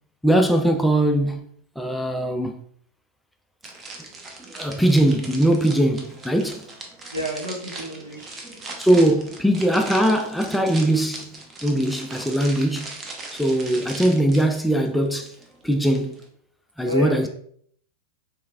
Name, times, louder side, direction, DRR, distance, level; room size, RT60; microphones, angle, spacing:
voice 1, 0.2-1.4 1.8-2.6 4.5-6.6 8.8-13.0 13.3-15.3 15.6-16.1 16.8-17.3, right 1 dB, 5° left, 0.3 m, -21 dB
sound 1, 3.6-16.3, right 2 dB, 20° right, 0.7 m, -39 dB
voice 2, 7.1-8.6 16.8-17.3, equal, 75° right, 1.1 m, -31 dB
4.6 x 3.3 x 2.4 m
figure-of-eight pair, 90°, 0 cm